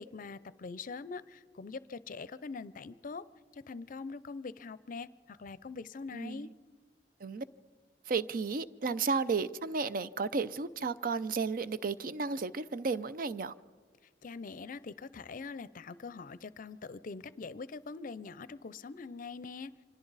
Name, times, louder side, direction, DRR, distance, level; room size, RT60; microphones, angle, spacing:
voice 1, 0.0-3.3 3.7-6.5 14.2-19.7, left 4 dB, 50° left, 0.5 m, -43 dB
voice 2, 6.1-6.5 7.2-7.4 8.1-13.5, right 4 dB, 55° right, 0.5 m, -33 dB
29.5 x 25.0 x 4.0 m
head